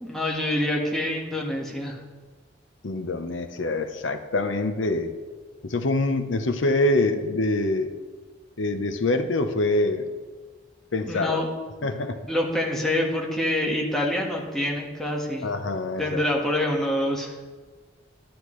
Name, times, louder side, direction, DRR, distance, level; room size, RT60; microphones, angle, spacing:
voice 1, 0.0-2.0 11.0-11.5 11.8-11.9 12.3-15.5 16.0-17.4, left 1 dB, ahead, -2 dB, 1.4 m, -26 dB
voice 2, 2.8-5.2 5.6-7.9 8.6-10.2 10.9-11.4 11.8-12.2 15.4-16.2, left 2 dB, 75° left, 8 dB, 0.8 m, -25 dB
11.5 x 10.5 x 3.2 m, 1.4 s
head